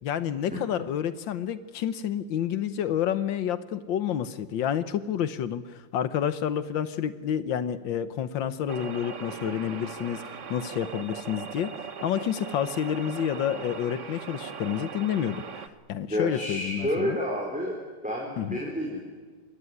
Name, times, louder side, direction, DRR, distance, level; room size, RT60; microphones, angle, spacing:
voice 1, 0.0-5.6 5.9-11.7 12.0-17.2 18.4-18.6, left 9 dB, 80° left, 13 dB, 1.7 m, -29 dB
sound 1, 8.7-15.7, right 6 dB, 45° right, 1.5 m, -39 dB
voice 2, 16.1-17.8 18.0-19.0, equal, 5° right, -2 dB, 4.3 m, -29 dB
26.0 x 20.5 x 9.8 m, 1.4 s
omnidirectional pair, 2.0 m